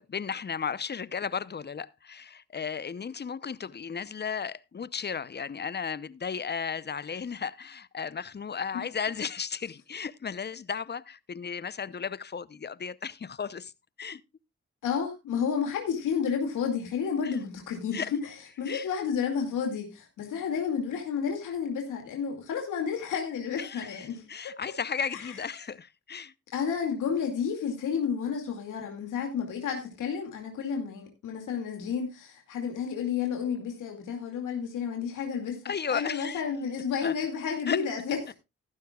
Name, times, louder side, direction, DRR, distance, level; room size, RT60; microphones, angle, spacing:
voice 1, 0.0-13.7 14.0-14.2 17.2-17.4 17.9-18.1 18.6-18.9 23.6-26.3 35.6-36.4 37.0-37.2 37.7-37.8, left 6 dB, 35° left, 0.7 m, -34 dB
voice 2, 14.8-18.2 18.6-24.6 25.1-25.3 26.5-35.6 35.9-38.3, left 7 dB, 90° left, 2.4 m, -31 dB
14.5 x 12.0 x 2.3 m
supercardioid pair, 55°, 30 cm